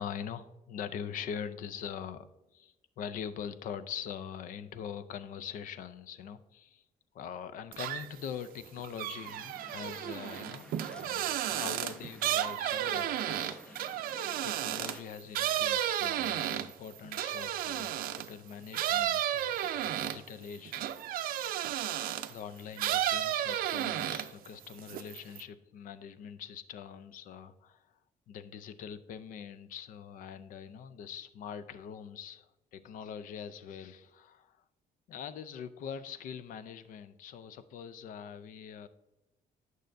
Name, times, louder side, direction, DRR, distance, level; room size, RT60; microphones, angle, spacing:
voice 1, 0.0-6.8 7.1-14.1 14.4-21.5 22.2-27.9 28.3-34.6 35.1-38.9, left 8 dB, 65° left, 13 dB, 0.5 m, -43 dB
sound 1, 7.7-8.3 8.6-18.3 18.7-22.4 22.8-24.5 24.8-25.4, right 11 dB, 75° right, 0.4 m, -33 dB
Waves surf, 9.2-15.0, left 1 dB, 5° left, 0.4 m, -53 dB
8.9 x 6.3 x 2.6 m, 0.95 s
cardioid pair, 165°, 15 cm